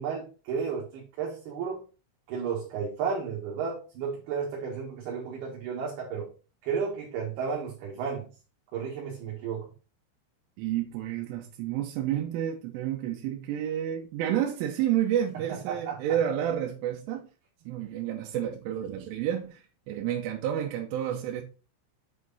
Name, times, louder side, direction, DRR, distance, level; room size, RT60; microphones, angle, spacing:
voice 1, 0.0-1.8 2.3-6.3 6.6-8.3 8.7-9.7 15.7-16.2, right 6 dB, 60° right, 3.3 m, -33 dB
voice 2, 10.6-17.2 17.6-21.4, right 10 dB, 75° right, 3.3 m, -30 dB
8.4 x 5.0 x 4.1 m
omnidirectional pair, 6.0 m